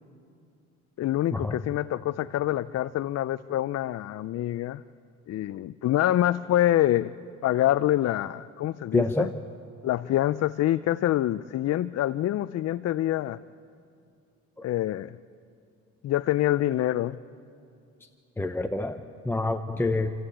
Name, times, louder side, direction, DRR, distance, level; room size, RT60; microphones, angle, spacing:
voice 1, 1.0-4.8 5.3-7.1 7.4-9.3 9.8-13.4 14.6-15.2 16.0-17.2, left 13 dB, 55° left, 14 dB, 0.5 m, -26 dB
voice 2, 8.9-9.3 18.4-20.1, left 2 dB, 5° left, 5 dB, 0.8 m, -27 dB
28.5 x 14.5 x 8.7 m, 2.5 s
cardioid pair, 90°, 30 cm